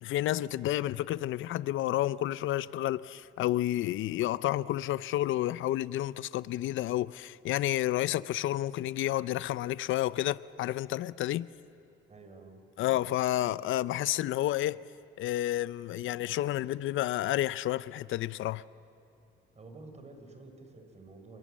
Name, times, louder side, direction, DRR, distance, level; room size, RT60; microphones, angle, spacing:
voice 1, 0.0-11.5 12.8-14.8 15.2-18.6, left 14 dB, 80° left, 0.6 m, -30 dB
voice 2, 12.1-12.6 19.5-21.4, right 3 dB, 35° right, 4.2 m, -50 dB
27.0 x 22.0 x 7.5 m
cardioid pair, 90°, 20 cm